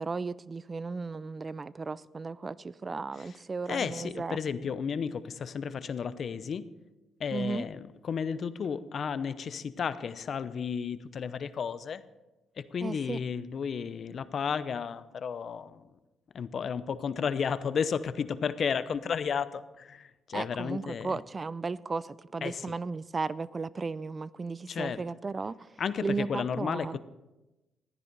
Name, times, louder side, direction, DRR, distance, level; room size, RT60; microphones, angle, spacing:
voice 1, 0.0-4.4 7.3-7.7 12.8-13.2 20.3-25.7 26.0-27.0, right 4 dB, 30° right, 0.4 m, -35 dB
voice 2, 3.7-6.7 7.2-12.0 12.6-15.8 16.3-21.2 22.4-22.8 24.7-25.1 25.8-27.0, left 6 dB, 55° left, 0.7 m, -33 dB
15.0 x 9.8 x 5.4 m
cardioid pair, 90°, 0 cm